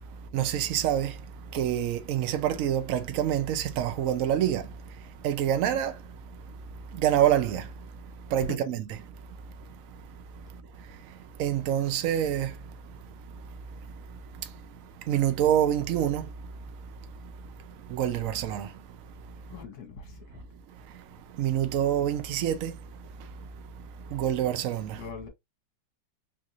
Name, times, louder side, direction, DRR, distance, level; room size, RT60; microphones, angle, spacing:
voice 1, 0.3-1.1 1.5-4.6 5.2-5.9 6.9-7.7 8.3-8.8 11.4-12.5 15.1-16.3 17.9-18.7 21.4-22.7 24.1-25.0, right 10 dB, 75° right, 0.7 m, -26 dB
voice 2, 19.5-20.4 24.9-25.3, left 6 dB, 55° left, 1.5 m, -43 dB
4.0 x 2.5 x 2.9 m
omnidirectional pair, 2.1 m